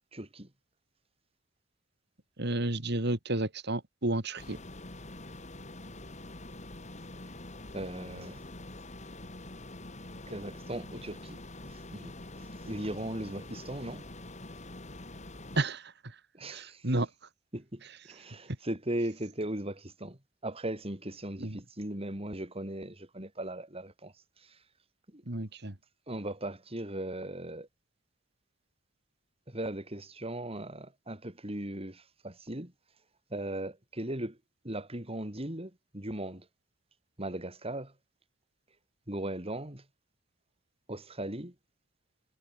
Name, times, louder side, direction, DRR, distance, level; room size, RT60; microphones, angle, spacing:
voice 1, 0.1-0.5 7.7-8.4 10.3-11.4 11.7-12.1 12.6-14.0 16.3-16.8 17.5-17.8 18.1-24.1 24.4-24.6 25.1-25.2 26.1-27.7 29.5-32.7 33.3-34.4 34.6-36.5 37.2-37.9 39.1-39.8 40.9-41.5, right 1 dB, 30° right, 4.3 m, -38 dB
voice 2, 2.4-4.6 15.6-15.9 16.5-17.1 21.4-21.6 25.3-25.7, right 2 dB, 60° right, 2.7 m, -31 dB
sound 1, 4.4-15.6, left 2 dB, 35° left, 3.8 m, -45 dB
head